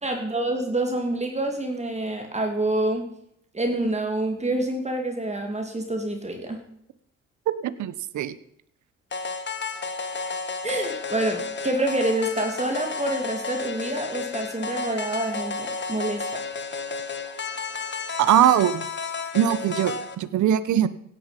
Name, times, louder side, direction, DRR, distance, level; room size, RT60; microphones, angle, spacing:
voice 1, 0.0-3.1 3.5-6.6 10.6-16.2, right 1 dB, 20° right, 4 dB, 2.8 m, -27 dB
voice 2, 7.6-8.3 18.2-18.8 19.3-20.9, right 11 dB, 75° right, 15 dB, 1.1 m, -21 dB
sound 1, 9.1-20.1, left 4 dB, 35° left, 1.8 m, -32 dB
16.5 x 10.5 x 5.3 m, 0.72 s
cardioid pair, 90°, 30 cm